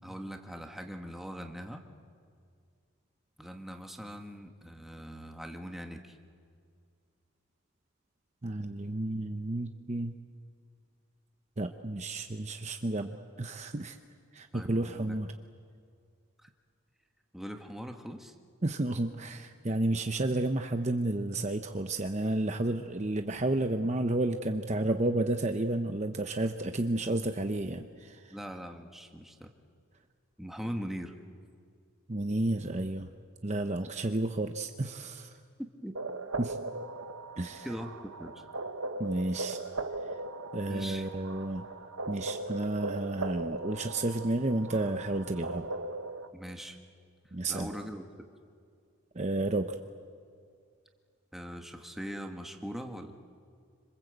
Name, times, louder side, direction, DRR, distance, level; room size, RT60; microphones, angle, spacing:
voice 1, 0.0-1.8 3.4-6.2 14.5-15.2 16.4-16.5 17.3-18.3 28.3-29.5 30.4-31.1 35.6-35.9 37.6-37.9 38.2-38.4 40.7-41.1 46.3-46.8 47.5-48.3 51.3-53.1, equal, ahead, 3 dB, 1.5 m, -41 dB
voice 2, 8.4-10.1 11.6-14.0 14.3-15.3 18.6-28.3 32.1-33.1 33.4-35.4 36.4-36.6 37.4-37.7 39.0-39.6 40.5-41.7 42.1-45.7 47.3-47.7 49.1-49.8, right 2 dB, 30° right, 6 dB, 0.8 m, -31 dB
sound 1, 36.0-46.3, right 2 dB, 80° right, 1.2 m, -39 dB
27.0 x 26.0 x 8.0 m, 2.2 s
head